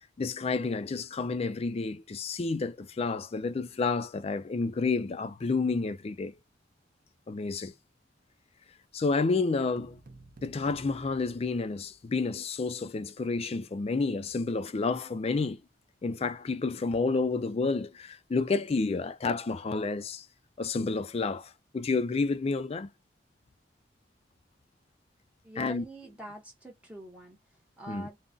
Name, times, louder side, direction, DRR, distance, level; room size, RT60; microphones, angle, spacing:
voice 1, 0.2-6.3 7.3-7.7 8.9-10.0 10.4-15.6 16.0-20.3 20.6-22.9 25.6-25.8 27.9-28.1, left 4 dB, 35° left, 0.4 m, -30 dB
sound 1, 9.8-12.3, right 2 dB, 50° right, 0.6 m, -52 dB
voice 2, 25.4-28.2, right 1 dB, 10° right, 0.8 m, -45 dB
3.8 x 2.1 x 2.2 m
head